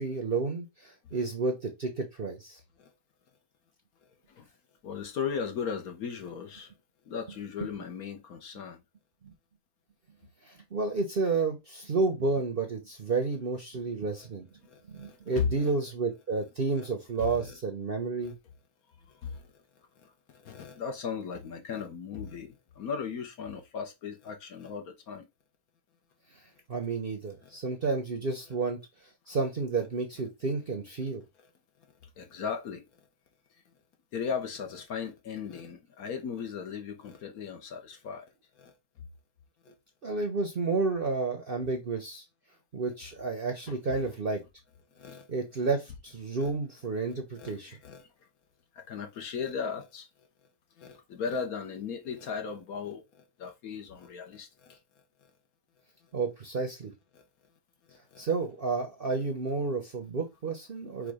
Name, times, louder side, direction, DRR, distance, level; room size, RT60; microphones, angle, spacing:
voice 1, 0.0-2.6 9.2-9.3 10.4-14.5 14.9-18.4 26.7-28.8 29.3-31.2 40.0-42.2 42.7-44.4 45.3-47.7 56.1-56.9 58.2-61.1, right 3 dB, 45° right, 0.8 m, -31 dB
voice 2, 4.8-6.7 7.1-8.8 14.6-15.7 16.7-16.9 17.2-17.5 18.2-18.3 19.2-19.5 20.0-25.3 27.4-27.5 32.2-32.8 34.1-38.3 38.6-38.7 39.6-39.7 43.7-43.8 44.9-45.3 45.6-45.7 46.4-46.5 47.4-48.1 48.7-50.1 50.8-54.8 57.1-57.2 57.9-58.2 61.0-61.1, left 6 dB, 65° left, 1.2 m, -37 dB
4.8 x 2.3 x 4.8 m
omnidirectional pair, 1.8 m